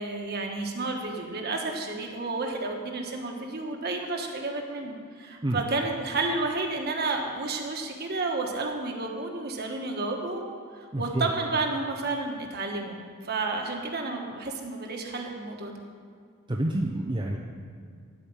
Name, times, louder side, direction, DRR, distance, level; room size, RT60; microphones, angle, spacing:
voice 1, 0.0-13.0 13.2-15.8, right 3 dB, 45° right, 2 dB, 1.5 m, -31 dB
voice 2, 10.9-11.3 16.5-17.4, right 1 dB, 20° right, -1 dB, 0.7 m, -28 dB
13.0 x 5.2 x 9.0 m, 2.2 s
head